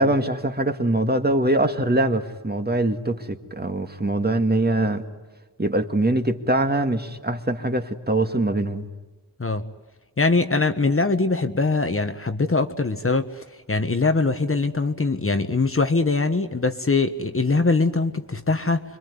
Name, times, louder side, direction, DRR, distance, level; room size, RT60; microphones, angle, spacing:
voice 1, 0.0-5.0 5.6-8.9, right 1 dB, 25° right, 1.9 m, -23 dB
voice 2, 10.2-18.8, left 3 dB, 35° left, 1.4 m, -22 dB
26.0 x 23.5 x 9.6 m
wide cardioid pair, 80°, 40 cm